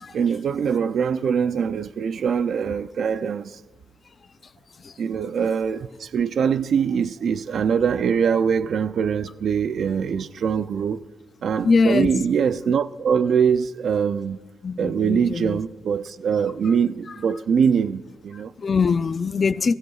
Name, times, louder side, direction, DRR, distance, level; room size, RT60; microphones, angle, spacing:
voice 1, 0.1-3.6 5.0-11.0 11.4-14.4 14.8-18.5, right 7 dB, 65° right, 0.4 m, -23 dB
voice 2, 11.6-12.2 14.6-15.6 18.6-19.7, left 5 dB, 40° left, 0.4 m, -22 dB
23.0 x 16.0 x 2.4 m
cardioid pair, 115°, 0 cm